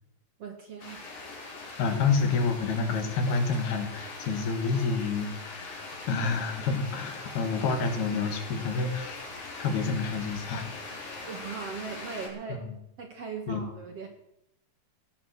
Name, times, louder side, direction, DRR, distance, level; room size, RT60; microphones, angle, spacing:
voice 1, 0.4-1.0 11.3-12.6 13.0-14.1, right 5 dB, 55° right, 4 dB, 2.0 m, -39 dB
sound 1, 0.8-12.3, left 3 dB, 50° left, 4.6 m, -41 dB
voice 2, 1.8-9.3 9.6-10.7 12.5-12.8 13.5-13.6, left 4 dB, 80° left, 7 dB, 3.9 m, -28 dB
16.0 x 9.3 x 7.9 m, 0.79 s
omnidirectional pair, 4.4 m